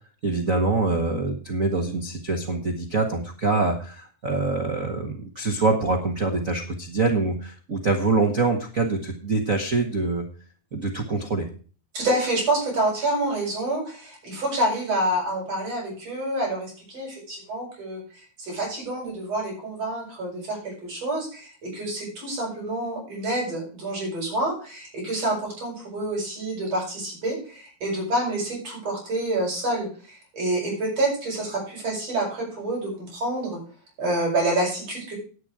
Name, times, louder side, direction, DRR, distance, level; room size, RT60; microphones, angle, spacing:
voice 1, 0.2-10.2 10.7-11.5, right 3 dB, 70° right, 3 dB, 0.7 m, -25 dB
voice 2, 11.9-33.6 34.0-35.2, right 1 dB, 45° right, -2 dB, 8.4 m, -28 dB
11.0 x 9.9 x 4.9 m, 0.39 s
omnidirectional pair, 4.0 m